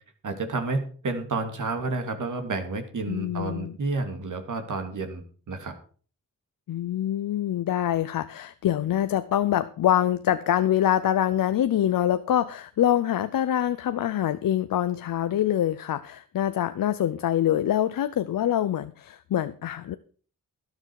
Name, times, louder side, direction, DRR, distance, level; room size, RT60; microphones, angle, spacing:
voice 1, 0.2-5.7, right 3 dB, 70° right, 6 dB, 2.6 m, -30 dB
voice 2, 3.1-3.8 6.7-20.0, left 11 dB, 90° left, 13 dB, 0.6 m, -25 dB
12.5 x 10.5 x 4.7 m, 0.41 s
cardioid pair, 55°, 32 cm